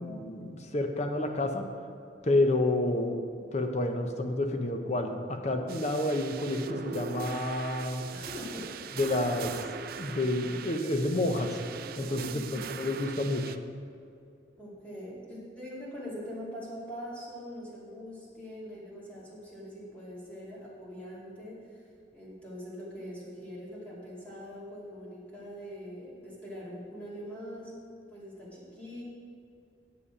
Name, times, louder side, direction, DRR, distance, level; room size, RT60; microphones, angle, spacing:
voice 1, 0.0-1.7 2.2-3.2 3.5-8.0 9.0-11.5 12.0-13.6, left 2 dB, 40° left, 5 dB, 0.7 m, -29 dB
sound 1, 5.7-13.6, right 6 dB, 55° right, 0.4 m, -41 dB
voice 2, 8.1-8.7 12.3-12.7 14.6-27.7 28.1-29.0, equal, 10° left, -8 dB, 2.4 m, -43 dB
9.8 x 6.9 x 4.9 m, 2.5 s
head